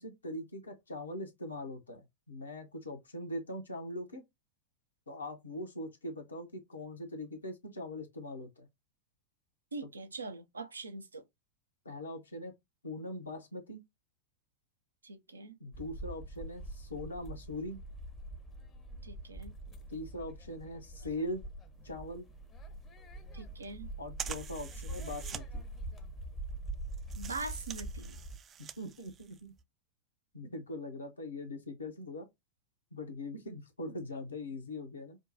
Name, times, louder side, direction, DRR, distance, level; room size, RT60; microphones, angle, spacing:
voice 1, 0.0-4.2 5.1-8.7 11.8-12.6 12.8-13.8 15.6-17.8 19.9-21.5 21.8-22.3 24.0-25.6 28.6-29.5 30.3-32.3 32.9-35.2, left 1 dB, 75° left, 1.0 m, -41 dB
voice 2, 9.7-11.2 15.0-15.5 19.0-19.5 23.3-23.9 27.2-28.2, right 3 dB, 75° right, 0.5 m, -42 dB
sound 1, 15.7-28.4, right 1 dB, 25° left, 0.7 m, -44 dB
sound 2, 21.7-29.6, right 8 dB, 25° right, 0.3 m, -47 dB
5.0 x 2.2 x 2.6 m
figure-of-eight pair, 90°, 0 cm